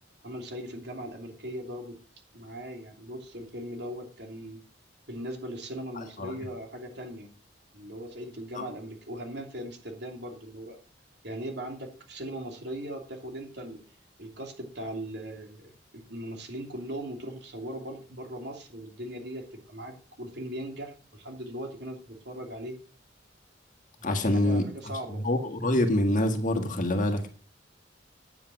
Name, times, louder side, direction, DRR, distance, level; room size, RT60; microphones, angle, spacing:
voice 1, 0.2-2.0 2.3-4.6 5.1-7.3 7.7-10.8 11.2-13.8 14.2-22.8 24.0-25.3, right 1 dB, 60° right, 3 dB, 2.8 m, -39 dB
voice 2, 6.0-6.3 8.6-8.7 24.0-24.6 25.2-27.3, left 1 dB, 45° left, 6 dB, 1.7 m, -26 dB
9.3 x 8.7 x 6.1 m, 0.41 s
head